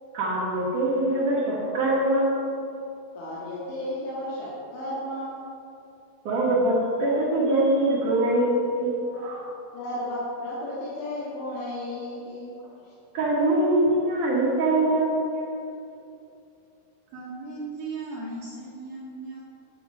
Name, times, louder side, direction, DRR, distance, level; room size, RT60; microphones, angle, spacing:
voice 1, 0.1-2.7 6.2-9.5 13.1-15.5, right 1 dB, 55° right, -6 dB, 2.4 m, -23 dB
voice 2, 3.1-5.5 9.7-12.6 12.8-12.9, left 1 dB, 70° left, -8 dB, 4.0 m, -33 dB
voice 3, 17.1-19.4, right 3 dB, 75° right, -5 dB, 2.2 m, -37 dB
9.8 x 9.1 x 4.9 m, 2.7 s
omnidirectional pair, 5.8 m